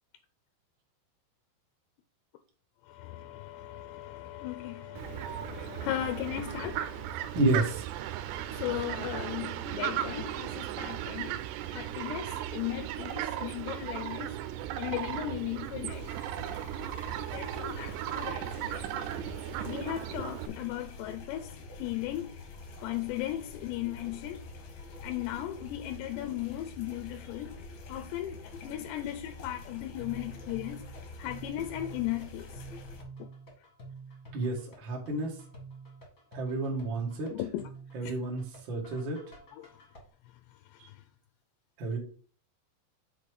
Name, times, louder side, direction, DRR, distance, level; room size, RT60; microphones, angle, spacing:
voice 1, 2.9-7.4 8.3-11.4 11.7-14.4 14.8-16.1 17.3-19.2 19.6-21.5 21.8-22.4 22.8-24.5 25.0-27.6 27.9-30.9 31.2-32.6 33.2-33.3 37.3-37.7 38.0-38.1 39.6-39.7 40.7-40.8, left 13 dB, 85° left, 2.6 m, -37 dB
Fowl, 5.0-20.5, right 12 dB, 85° right, 2.6 m, -36 dB
voice 2, 7.3-7.8 34.3-35.3 36.3-37.3 37.9-39.2 40.8-40.9 41.8-42.0, right 2 dB, 60° right, 1.2 m, -30 dB
sound 1, 15.9-33.0, left 3 dB, 70° left, 1.8 m, -46 dB
sound 2, 30.0-40.0, right 3 dB, 40° left, 1.1 m, -48 dB
7.0 x 4.2 x 4.7 m
omnidirectional pair, 5.0 m